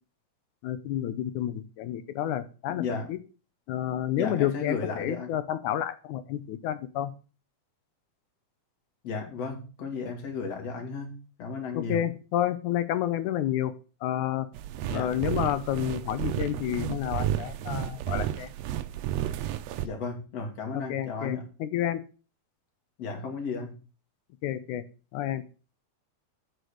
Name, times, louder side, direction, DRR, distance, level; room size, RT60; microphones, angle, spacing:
voice 1, 0.6-2.8 3.1-3.2 3.7-7.1 11.7-13.7 14.0-14.5 14.9-18.5 20.7-22.0 24.4-24.8 25.1-25.4, left 11 dB, 80° left, 12 dB, 2.3 m, -30 dB
voice 2, 2.7-3.1 4.2-5.3 9.0-12.0 14.9-15.2 19.8-21.4 23.0-23.8, left 4 dB, 55° left, 2 dB, 3.3 m, -34 dB
sound 1, 14.5-19.9, right 12 dB, 75° right, 1.7 m, -32 dB
8.1 x 6.1 x 6.6 m, 0.35 s
omnidirectional pair, 3.4 m